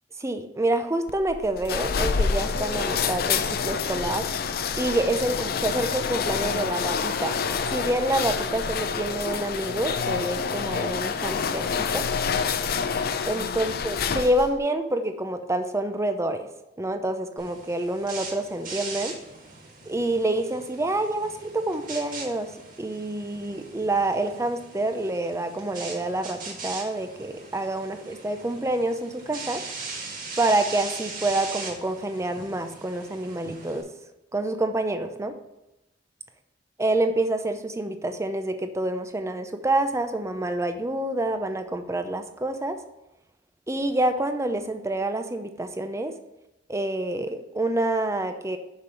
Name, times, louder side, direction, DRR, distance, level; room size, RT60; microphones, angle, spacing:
voice 1, 0.2-4.3 4.7-12.1 13.2-16.5 16.8-19.1 19.9-22.5 22.8-29.6 30.4-33.9 34.3-35.4 36.8-42.8 43.7-46.2 46.7-48.6, right 1 dB, 15° right, 8 dB, 0.6 m, -27 dB
sound 1, 1.1-14.6, left 6 dB, 55° left, 0.5 m, -27 dB
sound 2, 17.4-33.8, right 3 dB, 50° right, 1.8 m, -40 dB
6.6 x 5.4 x 5.6 m, 0.92 s
head